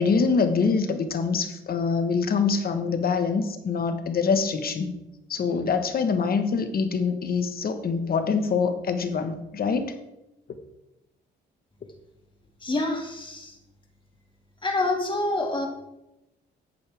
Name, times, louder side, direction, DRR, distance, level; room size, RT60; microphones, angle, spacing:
voice 1, 0.0-4.9 5.3-9.9, left 5 dB, 50° left, 8 dB, 1.4 m, -25 dB
voice 2, 12.6-13.5 14.6-15.7, left 2 dB, 25° left, 2 dB, 2.3 m, -27 dB
13.5 x 8.9 x 3.6 m, 0.91 s
cardioid pair, 90°, 20 cm